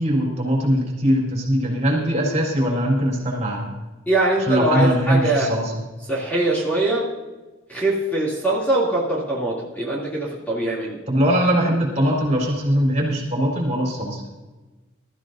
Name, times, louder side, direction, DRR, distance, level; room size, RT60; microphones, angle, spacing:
voice 1, 0.0-3.8 4.4-5.8 11.1-14.2, equal, 35° right, -1 dB, 4.1 m, -21 dB
voice 2, 4.1-5.5 6.1-7.0 7.7-11.0, right 2 dB, 10° left, -5 dB, 2.8 m, -22 dB
22.0 x 13.5 x 2.7 m, 1.2 s
head